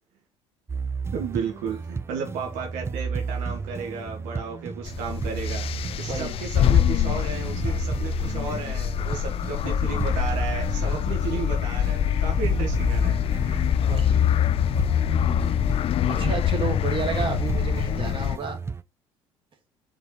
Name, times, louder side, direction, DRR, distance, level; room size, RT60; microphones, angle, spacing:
sound 1, 0.7-18.8, right 4 dB, 20° right, 0.4 m, -33 dB
voice 1, 1.1-5.7 6.0-13.8, right 5 dB, 75° right, 2 dB, 1.5 m, -34 dB
sound 2, 4.9-18.4, left 10 dB, 45° left, 0.4 m, -24 dB
voice 2, 6.1-6.4 13.9-14.2 16.1-18.6, right 5 dB, 40° right, 3 dB, 2.3 m, -31 dB
Strum, 6.5-10.7, left 9 dB, 65° left, 1.2 m, -47 dB
4.7 x 4.6 x 4.7 m, 0.27 s
supercardioid pair, 75°, 13 cm